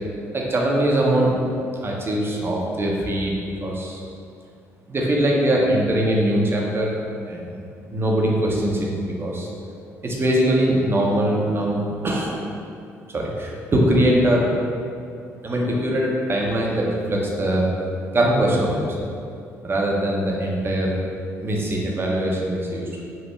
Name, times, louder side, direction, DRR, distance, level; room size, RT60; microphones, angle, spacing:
voice 1, 0.3-1.3 1.8-4.0 4.9-7.0 7.2-7.6 7.9-9.5 10.0-12.4 13.1-14.5 15.4-17.7 18.1-19.1 19.6-20.9 21.4-23.0, right 1 dB, 30° right, -2 dB, 0.6 m, -22 dB
3.2 x 2.0 x 3.1 m, 2.4 s
hypercardioid pair, 50°, 7 cm